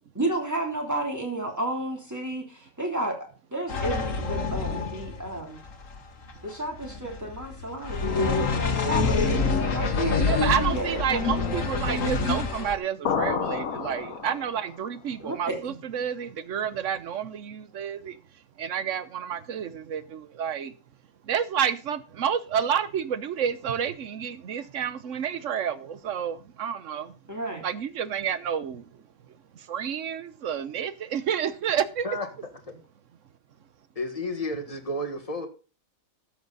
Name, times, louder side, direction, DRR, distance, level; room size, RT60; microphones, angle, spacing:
voice 1, 0.1-3.2 3.5-5.6 6.4-11.3 15.2-15.7 24.6-24.7 27.3-27.7, right 1 dB, 10° right, 3.2 m, -32 dB
sound 1, 3.7-12.7, left 4 dB, 65° left, 1.7 m, -27 dB
voice 2, 10.2-18.2 18.6-20.7 21.2-27.1 27.6-28.9 29.7-32.1, right 8 dB, 65° right, 1.2 m, -29 dB
sound 2, 13.1-14.8, left 7 dB, 85° left, 1.5 m, -29 dB
voice 3, 34.0-35.5, left 1 dB, 25° left, 1.8 m, -31 dB
13.0 x 8.0 x 4.1 m
omnidirectional pair, 1.4 m